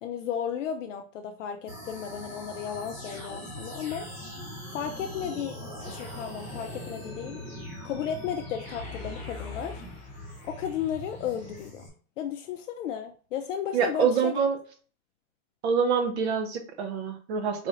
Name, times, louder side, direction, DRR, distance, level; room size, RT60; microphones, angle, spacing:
voice 1, 0.0-4.1 4.7-5.6 5.9-7.4 7.8-9.8 10.4-11.9 12.2-14.3, left 8 dB, 60° left, 5 dB, 0.5 m, -34 dB
sound 1, 1.7-11.9, left 1 dB, 15° right, 0.4 m, -41 dB
Mechanisms, 5.8-11.7, left 5 dB, 10° left, 0.9 m, -46 dB
voice 2, 13.7-14.6 15.6-17.7, right 6 dB, 50° right, 7 dB, 0.8 m, -26 dB
4.0 x 3.0 x 2.4 m, 0.41 s
supercardioid pair, 165°, 42 cm